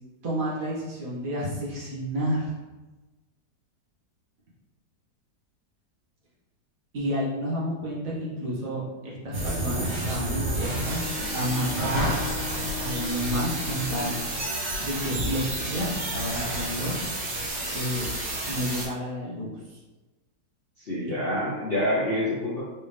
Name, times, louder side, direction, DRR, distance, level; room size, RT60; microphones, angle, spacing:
voice 1, 0.2-2.5 6.9-11.1 11.3-12.2 12.8-14.2 14.8-16.9 17.7-18.1 18.5-19.5 21.1-21.2, equal, 55° right, -6 dB, 1.5 m, -30 dB
sound 1, 9.3-18.9, right 1 dB, 75° right, 1.9 m, -30 dB
Bowed string instrument, 10.4-14.5, left 7 dB, 90° left, 1.5 m, -40 dB
voice 2, 20.8-22.6, left 1 dB, 50° left, -7 dB, 0.7 m, -27 dB
4.3 x 3.4 x 3.3 m, 1.2 s
omnidirectional pair, 1.9 m